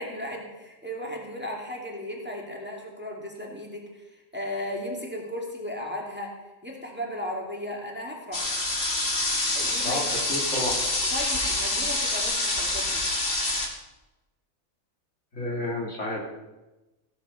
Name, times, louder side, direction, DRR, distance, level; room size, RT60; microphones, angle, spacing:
voice 1, 0.0-6.3 6.6-8.6 9.5-10.1 11.1-13.1, left 1 dB, 5° right, -1 dB, 2.6 m, -35 dB
sound 1, 8.3-13.7, left 2 dB, 40° left, 2.3 m, -26 dB
voice 2, 9.8-10.8 15.3-16.2, left 1 dB, 60° left, -2 dB, 3.1 m, -31 dB
16.5 x 10.5 x 5.7 m, 1.1 s
omnidirectional pair, 1.4 m